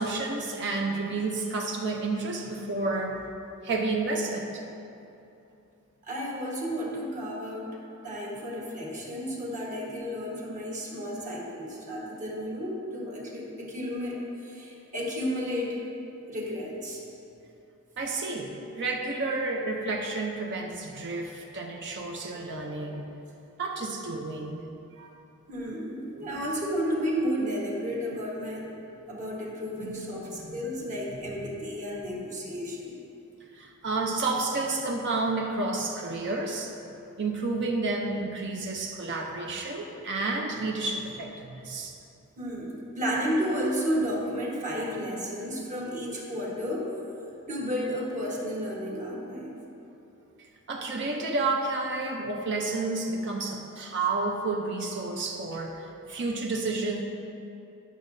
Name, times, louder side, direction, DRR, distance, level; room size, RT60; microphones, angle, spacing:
voice 1, 0.0-3.2 3.6-4.6 18.0-23.1 23.6-24.6 24.9-25.1 26.1-26.5 29.8-30.6 31.4-31.5 33.5-36.7 37.2-41.9 50.7-57.0, right 3 dB, 55° right, 1 dB, 0.6 m, -31 dB
voice 2, 6.0-7.8 8.0-15.8 16.3-17.0 25.5-28.7 29.1-33.0 42.4-46.9 47.5-49.6, equal, 35° right, -4 dB, 1.3 m, -32 dB
11.0 x 6.3 x 2.6 m, 2.8 s
head